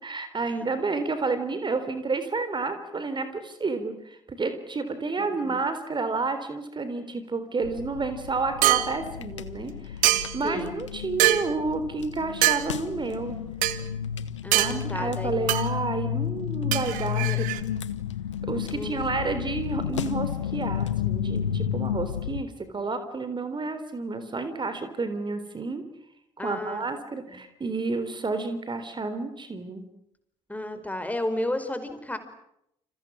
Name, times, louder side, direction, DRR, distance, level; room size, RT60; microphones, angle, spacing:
voice 1, 0.0-13.4 14.5-17.5 18.4-25.8 26.4-29.9, right 3 dB, 30° right, 10 dB, 3.7 m, -30 dB
voice 2, 5.2-5.6 10.4-10.7 14.4-15.3 17.2-17.4 18.7-19.0 26.4-26.8 27.3-27.4 30.5-32.2, left 1 dB, 10° left, 9 dB, 5.1 m, -32 dB
sound 1, 7.6-22.4, left 9 dB, 80° left, 1.2 m, -32 dB
sound 2, 8.6-8.9 10.0-10.5 11.2-11.5 12.4-12.6 13.6-13.8 14.5-14.7 15.5-15.7 16.7-17.6, right 16 dB, 65° right, 1.8 m, -22 dB
30.0 x 28.0 x 6.4 m, 0.77 s
figure-of-eight pair, 45°, 15 cm